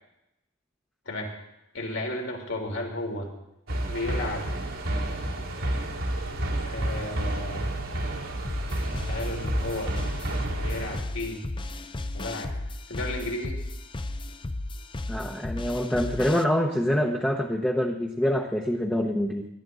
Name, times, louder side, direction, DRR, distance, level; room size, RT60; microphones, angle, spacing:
voice 1, 1.7-3.3 3.8-4.5 6.6-7.7 9.1-10.0 10.6-11.4 12.1-12.6 12.9-13.6, left 1 dB, 75° left, 1 dB, 3.3 m, -33 dB
sound 1, 3.7-11.0, right 1 dB, 80° right, 2.6 m, -30 dB
sound 2, 8.4-16.4, left 2 dB, 25° left, 0.5 m, -35 dB
voice 2, 15.1-19.5, equal, 5° left, 0 dB, 0.9 m, -25 dB
19.0 x 12.0 x 3.8 m, 0.88 s
head